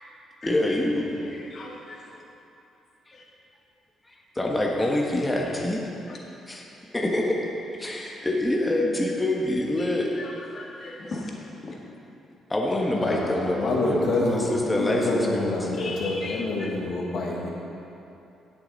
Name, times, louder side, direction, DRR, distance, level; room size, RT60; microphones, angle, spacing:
voice 1, 0.4-1.1 3.1-3.2 4.3-5.8 6.5-6.6 6.9-7.5 7.8-10.1 12.5-15.5, left 1 dB, 15° left, -1 dB, 1.3 m, -26 dB
voice 2, 1.1-2.0 6.1-6.2 10.2-11.3 11.6-11.7 15.8-16.4, left 3 dB, 45° left, -1 dB, 1.8 m, -38 dB
voice 3, 12.9-17.5, left 2 dB, 65° left, -2 dB, 1.4 m, -27 dB
16.5 x 6.9 x 4.1 m, 2.8 s
cardioid pair, 90°, 0 cm